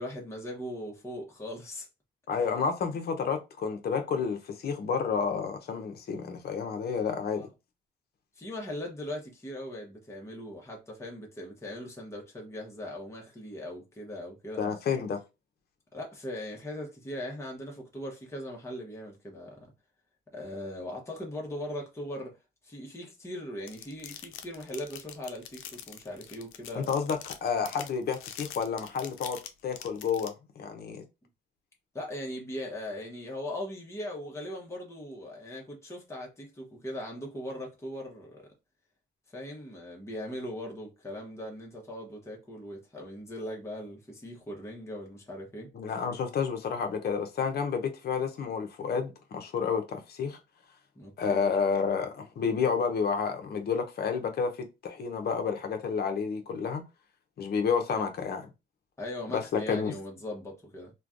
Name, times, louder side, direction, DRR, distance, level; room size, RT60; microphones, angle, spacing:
voice 1, 0.0-1.9 2.3-2.5 7.3-7.5 8.4-14.6 15.9-19.7 20.3-22.4 22.6-26.9 31.9-38.5 39.3-45.7 50.9-51.6 57.9-58.1 59.0-60.9, left 1 dB, 15° left, 0.9 m, -39 dB
voice 2, 2.3-7.5 14.6-15.2 26.7-29.4 29.6-31.0 45.7-50.4 51.2-54.5 54.8-56.8 57.4-58.5 59.3-59.9, left 6 dB, 55° left, 0.7 m, -30 dB
sound 1, 23.7-30.3, left 11 dB, 90° left, 0.4 m, -43 dB
3.2 x 2.2 x 2.4 m
cardioid pair, 90°, 20 cm